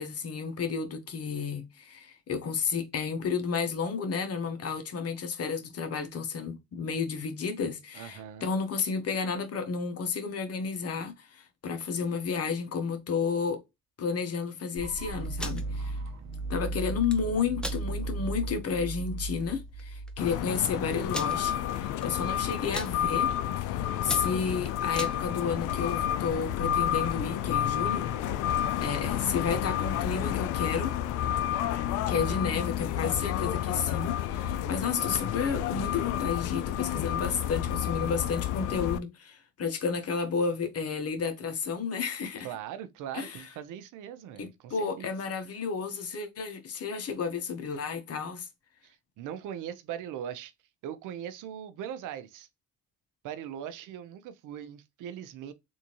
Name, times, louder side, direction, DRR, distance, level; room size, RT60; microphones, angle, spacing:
voice 1, 0.0-13.6 14.0-16.0 16.5-23.3 23.6-28.1 28.8-30.9 32.1-42.5 43.1-43.4 44.4-48.5, left 5 dB, 55° left, 1.0 m, -32 dB
voice 2, 7.9-8.5 32.1-32.6 42.4-45.2 48.8-50.5 50.8-52.5 53.2-55.5, right 9 dB, 90° right, 0.6 m, -40 dB
sound 1, 14.8-20.7, right 2 dB, 65° right, 0.9 m, -36 dB
sound 2, 15.2-15.6 16.9-17.2 17.6-17.8 18.3-18.4 18.8-19.0 19.8-19.9 20.1-20.2 21.1-21.4 22.0-22.3 22.6-22.9 23.5-23.7 24.0-25.2, equal, 5° left, 0.7 m, -37 dB
sound 3, 20.2-39.0, left 11 dB, 85° left, 0.5 m, -30 dB
3.5 x 2.7 x 2.8 m
cardioid pair, 90°, 30 cm